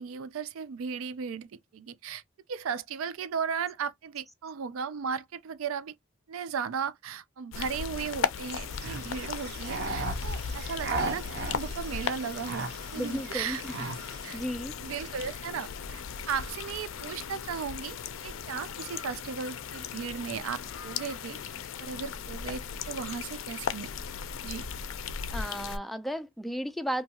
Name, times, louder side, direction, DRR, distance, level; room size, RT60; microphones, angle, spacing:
voice 1, 0.0-2.2 2.5-5.9 6.3-12.6 12.9-13.9 14.2-14.4 14.8-16.0 16.3-18.0 18.2-21.4 21.8-23.9 24.4-24.6, right 6 dB, 80° right, 0.4 m, -36 dB
sound 1, 7.5-25.8, left 6 dB, 70° left, 0.4 m, -37 dB
sound 2, 8.7-14.3, right 3 dB, 55° right, 0.8 m, -37 dB
voice 2, 12.9-13.7 14.3-14.7 25.1-27.0, equal, ahead, 0.3 m, -34 dB
2.7 x 2.3 x 2.8 m
head